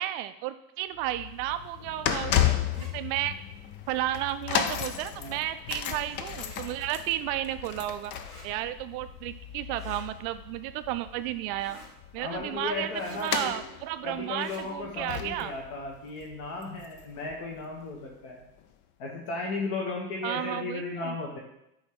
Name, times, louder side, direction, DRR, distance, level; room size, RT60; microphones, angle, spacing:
voice 1, 0.0-3.4 3.9-8.1 8.4-11.8 12.1-15.5 20.2-21.2, right 14 dB, 40° right, 11 dB, 0.4 m, -33 dB
sound 1, 1.0-17.3 17.6-17.8 18.6-18.7, left 10 dB, 25° left, 0.3 m, -34 dB
sound 2, 2.7-2.9 4.4-4.7 6.3-6.6 8.2-8.5 9.7-10.0 11.6-11.9 12.9-13.2 14.3-14.6, equal, 85° left, 2.1 m, -51 dB
voice 2, 5.1-5.4 12.2-13.6 14.0-18.4 19.0-21.4, left 3 dB, 50° left, -1 dB, 1.5 m, -35 dB
9.0 x 3.4 x 4.0 m, 0.83 s
figure-of-eight pair, 85°, 46 cm